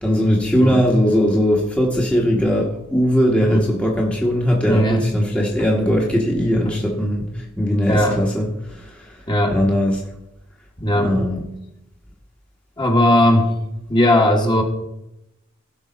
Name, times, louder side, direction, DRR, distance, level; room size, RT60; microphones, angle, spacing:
voice 1, 0.0-9.1 9.5-10.0 10.9-11.4, equal, 5° left, -2 dB, 1.2 m, -19 dB
voice 2, 4.6-5.0 6.6-6.8 7.9-8.2 9.3-9.6 10.8-11.1 12.8-13.5 13.9-14.6, left 1 dB, 20° left, 2 dB, 1.4 m, -17 dB
16.5 x 5.5 x 4.0 m, 0.86 s
head